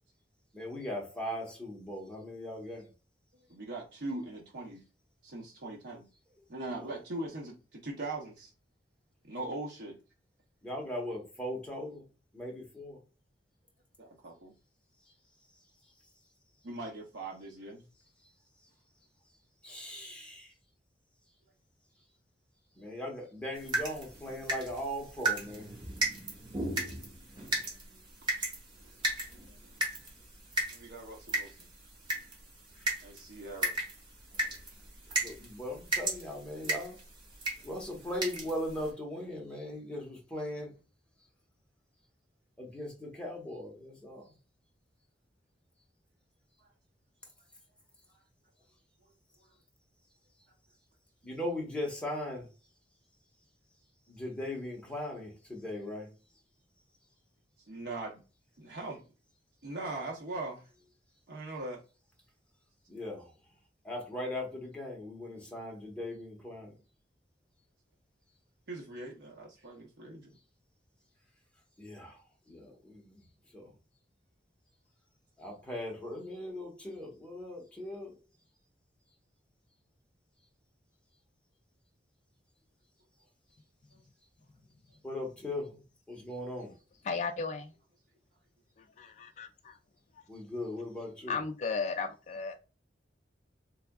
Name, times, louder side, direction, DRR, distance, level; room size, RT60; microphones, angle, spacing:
voice 1, 0.5-2.9 10.6-12.0 12.3-13.0 19.6-20.5 22.7-25.7 32.8-32.9 35.2-37.0 37.6-40.7 42.6-44.3 51.2-52.5 54.1-56.1 62.9-63.3 63.8-66.8 71.8-72.2 72.5-73.2 73.5-73.7 75.4-78.2 85.0-86.7 90.3-91.4, left 1 dB, 5° left, 1.1 m, -39 dB
voice 2, 3.5-4.8 5.2-6.1 6.5-8.5 9.2-10.0 14.0-14.5 16.6-17.8 30.7-31.7 33.0-33.8 46.6-46.7 48.1-48.2 57.7-58.2 58.6-59.0 59.6-60.7 61.3-61.8 68.7-70.3, right 2 dB, 65° right, 0.7 m, -41 dB
sound 1, 23.5-38.9, right 1 dB, 25° right, 1.2 m, -36 dB
voice 3, 87.0-87.7 88.8-89.8 90.1-90.2 91.3-92.6, left 4 dB, 40° left, 0.3 m, -35 dB
3.4 x 3.4 x 2.3 m
head